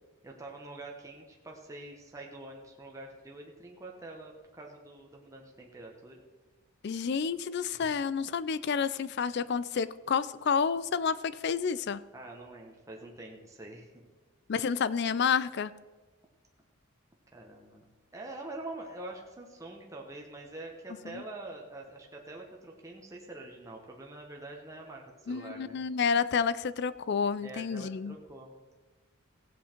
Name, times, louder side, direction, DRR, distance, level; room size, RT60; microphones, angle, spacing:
voice 1, 0.2-6.2 7.7-7.9 12.1-14.1 17.3-17.9 18.1-25.8 27.4-28.8, right 2 dB, 15° right, 0 dB, 1.1 m, -45 dB
voice 2, 6.8-12.0 14.5-15.7 21.1-21.2 25.3-28.2, left 6 dB, 50° left, 17 dB, 0.4 m, -29 dB
16.0 x 8.2 x 4.4 m, 1.2 s
head